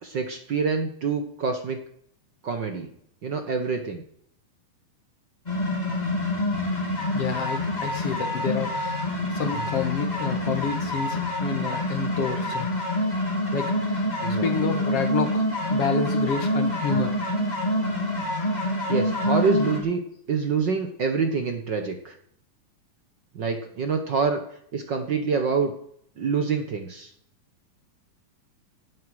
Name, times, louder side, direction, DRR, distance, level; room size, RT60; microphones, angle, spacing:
voice 1, 0.0-1.8 2.4-2.9 3.2-4.0 9.5-9.7 14.2-14.7 16.9-17.0 18.9-20.0 20.3-22.2 23.3-24.4 24.7-25.7 26.2-27.1, right 5 dB, 55° right, 6 dB, 1.3 m, -26 dB
sound 1, 5.5-19.8, left 1 dB, 15° left, 2.9 m, -26 dB
voice 2, 7.1-9.0 9.4-12.7 13.0-13.1 13.5-14.1 14.4-15.4 15.7-17.2, left 6 dB, 60° left, 7 dB, 2.1 m, -29 dB
16.5 x 11.5 x 4.9 m, 0.68 s
omnidirectional pair, 3.6 m